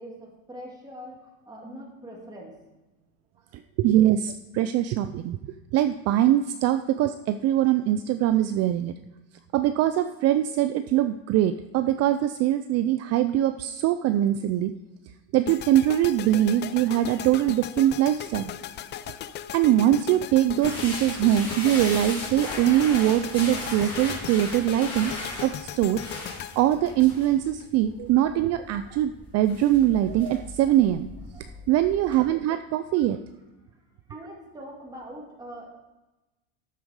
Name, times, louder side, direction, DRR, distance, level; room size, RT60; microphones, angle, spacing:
voice 1, 0.0-2.5 3.4-3.6 31.3-31.7 32.8-33.2 33.7-35.7, equal, 10° right, -2 dB, 2.2 m, -43 dB
voice 2, 3.8-5.4 5.7-8.9 9.5-14.7 15.3-18.5 19.5-26.0 26.6-31.1 31.7-33.2, right 12 dB, 40° right, 11 dB, 0.4 m, -22 dB
sound 1, 15.5-27.6, left 10 dB, 30° left, 0.4 m, -38 dB
sound 2, 20.6-32.2, left 2 dB, 15° left, 4.6 m, -38 dB
12.5 x 7.4 x 4.8 m, 1.1 s
supercardioid pair, 135°, 39 cm